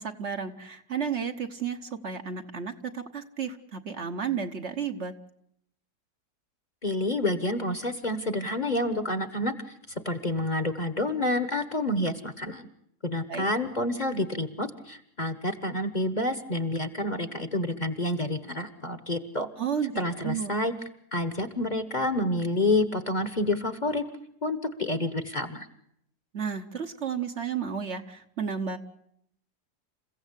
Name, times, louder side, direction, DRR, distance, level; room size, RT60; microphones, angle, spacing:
voice 1, 0.0-5.1 13.3-13.5 19.6-19.9 20.2-20.5 26.3-28.8, right 7 dB, 50° right, 6 dB, 1.3 m, -32 dB
voice 2, 6.8-9.7 10.0-12.7 13.0-19.5 20.0-20.7 21.1-24.0 24.4-25.7, left 1 dB, 30° left, 10 dB, 1.3 m, -28 dB
28.5 x 15.5 x 8.2 m, 0.73 s
omnidirectional pair, 1.7 m